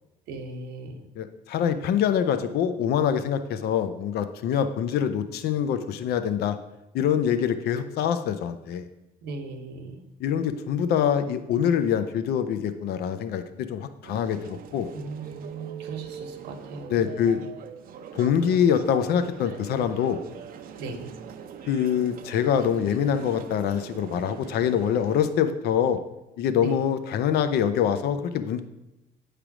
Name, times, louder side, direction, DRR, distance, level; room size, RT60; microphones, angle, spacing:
voice 1, 0.3-1.0 4.5-4.7 9.2-10.0 14.9-17.5 20.8-21.1 26.6-26.8, right 3 dB, 85° right, 4 dB, 1.1 m, -38 dB
voice 2, 1.2-6.6 6.9-8.8 10.2-14.9 16.9-17.4 18.1-20.2 21.7-26.0 26.4-28.6, left 8 dB, 70° left, 10 dB, 0.5 m, -25 dB
sound 1, 14.0-25.2, right 8 dB, 60° right, 0.6 m, -43 dB
8.8 x 3.3 x 6.0 m, 0.93 s
cardioid pair, 110°, 17 cm